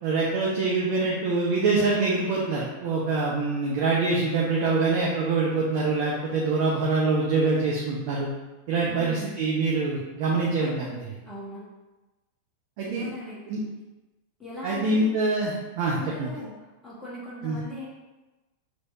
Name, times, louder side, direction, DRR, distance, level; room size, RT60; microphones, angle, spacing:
voice 1, 0.0-8.3 8.7-11.2 12.8-13.0 13.5-13.6 14.6-16.3 17.4-17.6, right 3 dB, 45° right, -4 dB, 0.7 m, -25 dB
voice 2, 8.9-9.3 11.2-11.6 12.9-13.4 14.4-15.1 16.0-16.5 16.8-17.9, left 1 dB, 15° left, -6 dB, 1.2 m, -39 dB
5.9 x 3.2 x 2.6 m, 1.1 s
figure-of-eight pair, 90°, 0 cm